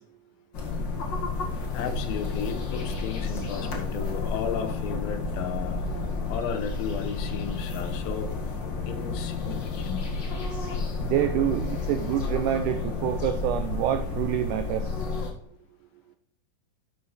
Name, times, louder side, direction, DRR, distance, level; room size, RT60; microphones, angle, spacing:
sound 1, 0.5-15.3, left 3 dB, 50° left, 1.4 m, -31 dB
voice 1, 1.7-5.9 6.3-8.3 8.8-10.0, left 8 dB, 80° left, 7 dB, 2.7 m, -34 dB
voice 2, 11.0-15.0, right 11 dB, 85° right, 9 dB, 1.8 m, -27 dB
10.5 x 5.6 x 4.1 m, 0.70 s
omnidirectional pair, 4.2 m